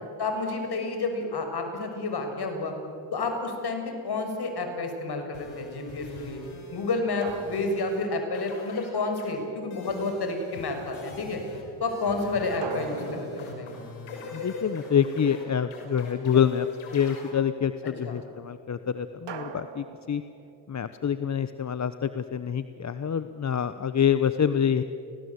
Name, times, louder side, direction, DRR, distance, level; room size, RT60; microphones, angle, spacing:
voice 1, 0.2-2.8 3.1-6.4 6.7-11.4 11.8-13.7 18.0-18.2, left 3 dB, 55° left, 5 dB, 6.1 m, -30 dB
sound 1, 4.6-5.2 7.2-9.0 12.6-15.2 19.3-20.9, right 6 dB, 60° right, 2.6 m, -42 dB
sound 2, 5.3-7.0 7.2-8.1 8.3-9.3 9.7-17.3, left 3 dB, 80° left, 6.1 m, -42 dB
voice 2, 14.3-16.7 16.9-20.2 20.7-24.8, left 8 dB, 35° left, 12 dB, 1.0 m, -26 dB
29.5 x 19.5 x 8.2 m, 2.7 s
supercardioid pair, 65°, 47 cm